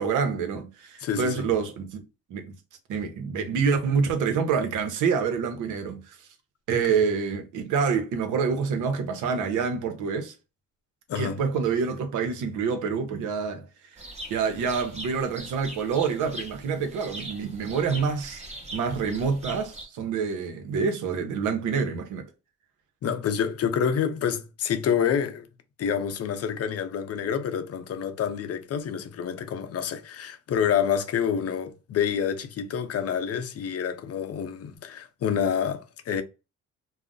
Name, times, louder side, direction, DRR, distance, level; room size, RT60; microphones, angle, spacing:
voice 1, 0.0-2.0 2.3-2.6 2.9-6.2 6.7-10.3 11.1-13.6 14.3-18.4 18.7-22.3, right 5 dB, 80° right, 0.7 m, -27 dB
voice 2, 1.0-1.4 6.7-6.8 11.1-11.4 23.0-25.5 25.8-36.2, left 8 dB, 55° left, 0.6 m, -28 dB
sound 1, 14.0-19.8, right 1 dB, 20° right, 0.9 m, -41 dB
2.3 x 2.0 x 3.7 m
cardioid pair, 90°, 30 cm